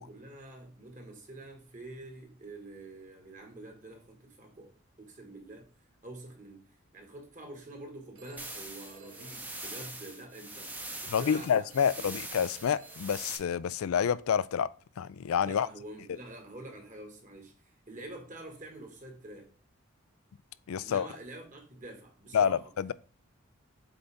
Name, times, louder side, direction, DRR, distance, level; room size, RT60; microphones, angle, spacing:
voice 1, 0.0-5.7 6.0-11.7 15.4-19.5 20.8-22.7, right 2 dB, 40° right, 1.7 m, -47 dB
Telephone, 8.1-10.5 11.7-13.4, right 5 dB, 80° right, 1.3 m, -56 dB
sound 1, 8.4-13.4, right 2 dB, 10° right, 0.7 m, -43 dB
voice 2, 11.1-15.7 20.7-21.1 22.3-22.9, left 7 dB, 85° left, 0.4 m, -28 dB
7.8 x 4.0 x 3.5 m
head